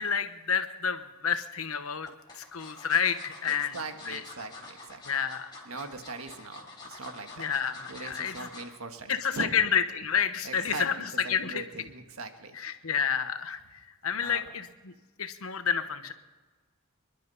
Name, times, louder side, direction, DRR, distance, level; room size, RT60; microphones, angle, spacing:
voice 1, 0.0-2.1 2.4-3.8 4.1-4.2 5.1-5.5 7.4-8.5 9.1-11.6 12.5-13.6 14.0-14.9 15.2-16.1, left 7 dB, 80° left, 9 dB, 1.2 m, -29 dB
sound 1, 2.1-8.8 9.2-9.4 9.7-9.8, left 3 dB, 20° left, 3.7 m, -47 dB
voice 2, 3.5-5.0 5.6-7.5 7.9-9.6 10.4-10.9 11.2-12.6 14.2-14.4, right 3 dB, 85° right, 6 dB, 1.5 m, -40 dB
27.0 x 11.5 x 4.1 m, 1.3 s
head